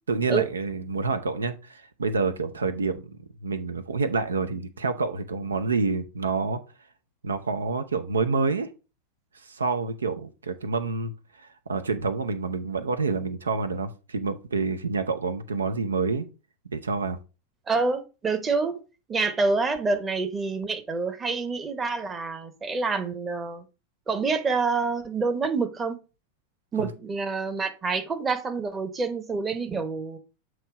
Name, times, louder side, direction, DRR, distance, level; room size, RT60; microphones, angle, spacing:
voice 1, 0.1-6.6 7.2-8.7 9.5-11.1 11.4-16.3 16.7-17.2 26.8-26.9, right 4 dB, 70° right, 0.6 m, -28 dB
voice 2, 17.7-18.8 19.1-23.6 24.1-26.0 26.7-30.2, right 4 dB, 20° right, 1.0 m, -27 dB
7.8 x 3.1 x 4.8 m
figure-of-eight pair, 90°, 0 cm